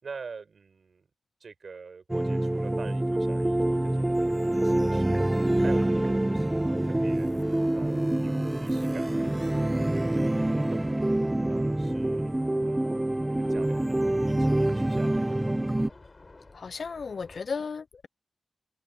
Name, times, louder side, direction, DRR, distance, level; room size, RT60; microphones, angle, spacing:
voice 1, 0.0-1.1 1.4-4.1 4.6-5.2 5.6-7.3 7.7-9.3 9.8-10.9 11.4-15.4, right 5 dB, 75° right, 5.2 m, -46 dB
sound 1, 2.1-15.9, right 1 dB, 20° right, 0.6 m, -26 dB
sound 2, 3.6-17.4, left 3 dB, 45° left, 5.4 m, -53 dB
voice 2, 16.5-18.1, left 5 dB, 75° left, 0.4 m, -35 dB
cardioid pair, 45°, 0 cm